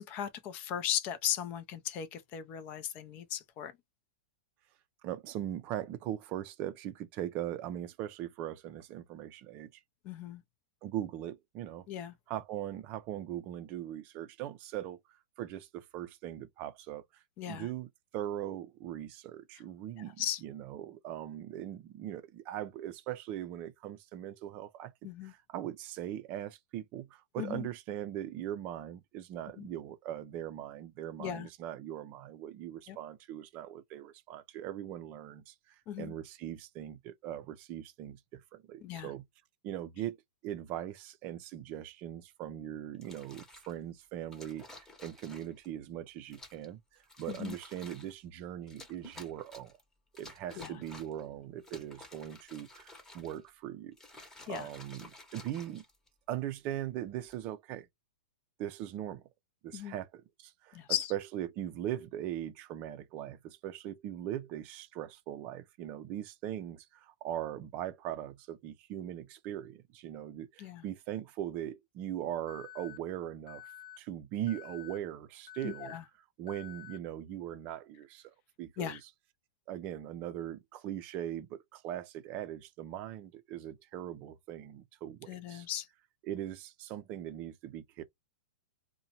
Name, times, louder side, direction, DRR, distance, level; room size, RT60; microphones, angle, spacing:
voice 1, 0.0-3.7 10.0-10.4 11.9-12.1 17.4-17.7 20.2-20.4 25.0-25.3 27.4-27.7 29.6-29.7 31.2-31.5 32.9-33.0 35.9-36.1 38.8-39.1 47.3-47.6 50.6-50.8 54.5-54.7 59.7-60.0 60.7-61.1 70.6-70.8 75.6-76.0 78.8-79.0 85.3-85.9, left 11 dB, 40° left, 0.5 m, -37 dB
voice 2, 5.0-9.7 10.8-11.9 12.3-15.0 15.4-39.2 39.6-40.2 40.4-46.8 47.2-49.8 50.2-54.0 54.5-55.8 56.3-57.9 58.6-59.2 59.6-60.8 61.1-73.6 74.0-75.9 76.4-79.0 79.7-85.7 86.2-88.0, right 12 dB, 40° right, 0.4 m, -40 dB
sound 1, 42.9-43.7 44.3-45.7 46.3-46.7 47.0-48.2 48.7-49.8 50.2-51.2 51.6-53.5 53.9-56.3 57.1-57.4, left 2 dB, 10° left, 0.9 m, -52 dB
Alarm, 72.5-73.0 73.5-74.0 74.5-75.0 75.5-76.0 76.5-77.0, left 11 dB, 60° left, 0.8 m, -49 dB
2.7 x 2.1 x 2.8 m
hypercardioid pair, 115°, 4 cm